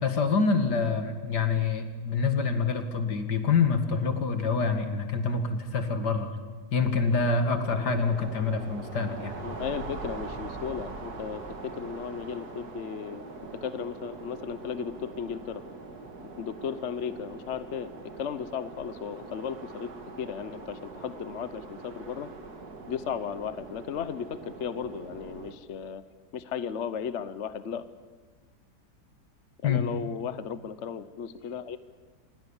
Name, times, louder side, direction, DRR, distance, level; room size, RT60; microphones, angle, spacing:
voice 1, 0.0-6.3 6.7-9.4 29.6-29.8, left 4 dB, 75° left, 7 dB, 2.5 m, -26 dB
sound 1, 6.8-25.5, right 3 dB, 65° right, 2.5 m, -43 dB
voice 2, 9.4-13.2 13.6-15.6 16.4-17.9 18.2-19.9 20.2-22.3 22.9-26.0 26.3-27.8 29.6-31.8, left 7 dB, 50° left, 13 dB, 1.0 m, -35 dB
27.5 x 21.5 x 7.2 m, 1.4 s
omnidirectional pair, 1.8 m